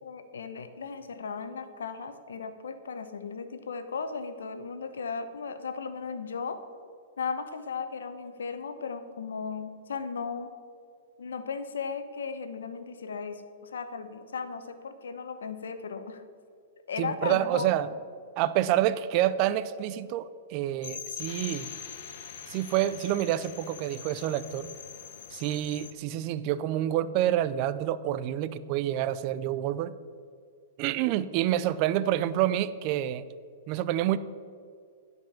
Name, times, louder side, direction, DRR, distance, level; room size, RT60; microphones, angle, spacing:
voice 1, 0.0-6.6 7.2-10.5 11.2-16.2 16.9-17.9, left 5 dB, 90° left, 9 dB, 1.0 m, -36 dB
voice 2, 17.0-17.9 18.4-21.7 22.5-24.7 25.3-29.9 30.8-33.2 33.7-34.2, right 12 dB, 40° right, 15 dB, 0.5 m, -28 dB
sound 1, 20.8-25.9, left 9 dB, 60° left, 1.0 m, -42 dB
11.5 x 5.3 x 7.4 m, 2.2 s
hypercardioid pair, 140°, 0 cm